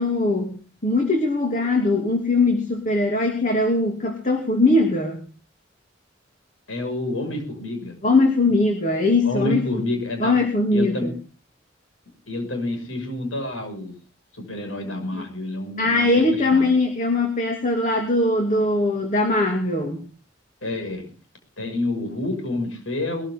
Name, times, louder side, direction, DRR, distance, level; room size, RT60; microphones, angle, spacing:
voice 1, 0.0-5.2 8.0-9.8 10.2-11.1 15.1-15.2 15.8-20.1, left 2 dB, 40° left, 3 dB, 2.6 m, -21 dB
voice 2, 6.7-7.9 9.2-10.3 10.7-11.1 12.3-13.9 14.4-16.7 20.6-21.1 21.6-23.3, left 2 dB, 90° left, 5 dB, 6.3 m, -28 dB
21.5 x 14.5 x 3.7 m, 0.36 s
head